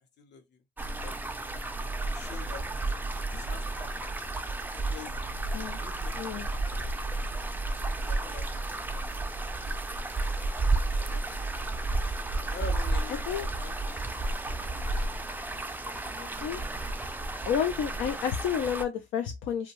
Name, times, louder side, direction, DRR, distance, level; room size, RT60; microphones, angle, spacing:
voice 1, 0.2-0.6 1.0-1.2 1.9-4.1 4.7-5.3 5.8-7.0 8.0-8.6 8.9-9.4 9.6-9.8 10.6-11.7 12.5-15.2, left 6 dB, 60° left, 0.8 m, -47 dB
sound 1, 0.8-18.8, right 2 dB, 10° right, 0.4 m, -32 dB
voice 2, 16.2-16.6 17.5-19.7, left 8 dB, 80° left, 0.4 m, -30 dB
2.6 x 2.2 x 2.9 m
cardioid pair, 90°, 20 cm